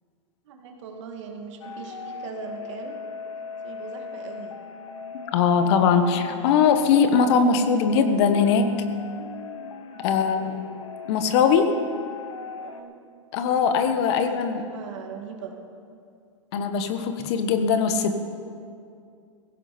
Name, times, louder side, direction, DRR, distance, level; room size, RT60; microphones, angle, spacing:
voice 1, 0.4-3.0 3.6-4.6 10.2-10.6 12.6-12.9 14.1-14.2 14.5-15.5, right 6 dB, 65° right, 2 dB, 2.5 m, -40 dB
sound 1, 1.6-12.8, left 5 dB, 80° left, 1.3 m, -38 dB
voice 2, 5.3-8.7 10.0-10.7 11.1-11.7 13.3-14.6 16.5-18.1, left 6 dB, 55° left, 8 dB, 1.4 m, -21 dB
17.0 x 16.0 x 4.4 m, 2.4 s
hypercardioid pair, 120°, 16 cm